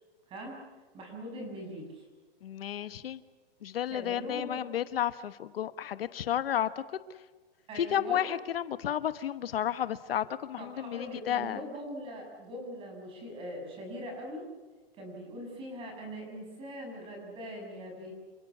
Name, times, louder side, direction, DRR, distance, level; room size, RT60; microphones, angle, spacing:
voice 1, 0.3-0.6 0.9-2.0 3.9-4.7 7.7-8.2 10.6-14.5 15.0-18.1, equal, 15° right, 2 dB, 6.6 m, -41 dB
voice 2, 2.4-3.2 3.6-6.7 7.7-11.6, left 10 dB, 70° left, 13 dB, 1.2 m, -32 dB
28.5 x 17.5 x 8.4 m, 1.3 s
hypercardioid pair, 165°, 30 cm